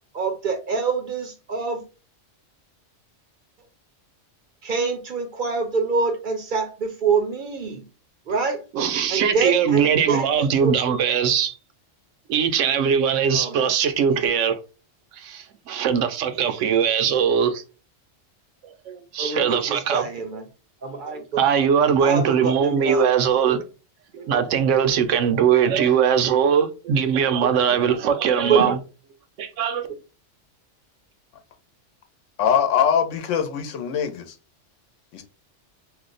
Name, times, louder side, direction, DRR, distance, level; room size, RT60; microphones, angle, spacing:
voice 1, 0.1-1.9 4.6-7.8 8.3-8.6 9.1-10.7 13.3-13.7 14.1-14.2 16.6-16.7 19.2-20.4 20.8-21.4 22.0-23.1 23.5-23.6 24.1-24.4 28.4-28.7, right 5 dB, 55° right, 0.6 m, -26 dB
voice 2, 8.7-11.6 12.3-14.6 15.1-17.6 18.6-20.0 21.4-23.6 24.3-28.8 29.4-29.9, right 7 dB, 85° right, 0.9 m, -21 dB
voice 3, 32.4-34.4 35.1-35.2, left 8 dB, 80° left, 1.0 m, -22 dB
2.7 x 2.1 x 3.8 m
omnidirectional pair, 1.2 m